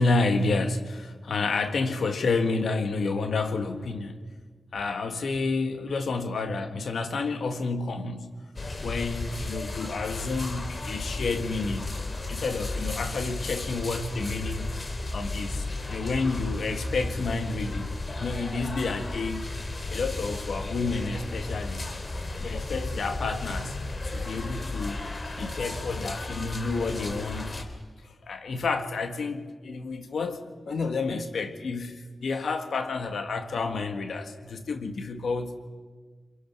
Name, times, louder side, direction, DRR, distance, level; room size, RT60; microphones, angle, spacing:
voice 1, 0.0-4.2 4.7-8.4 8.8-12.0 12.3-14.7 15.1-19.5 19.9-22.0 22.4-23.8 24.1-25.1 25.4-27.7 28.2-35.6, left 3 dB, 85° left, 1.9 m, -30 dB
sound 1, 8.6-27.6, left 2 dB, 50° left, 3.4 m, -34 dB
27.0 x 23.5 x 6.3 m
cardioid pair, 45°, 0 cm